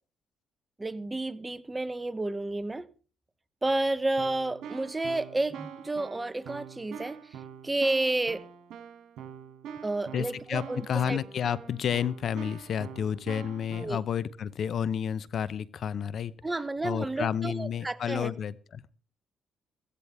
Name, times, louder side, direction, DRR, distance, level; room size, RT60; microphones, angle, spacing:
voice 1, 0.8-2.9 3.6-7.2 7.6-8.4 9.8-11.2 13.8-14.0 16.4-18.3, right 2 dB, 15° right, 1.0 m, -31 dB
Keyboard (musical), 3.7-3.8 4.2-13.9, right 8 dB, 75° right, 2.8 m, -44 dB
voice 2, 10.1-16.3 16.8-18.8, left 8 dB, 60° left, 0.7 m, -31 dB
17.0 x 15.5 x 3.5 m
cardioid pair, 90°, 0 cm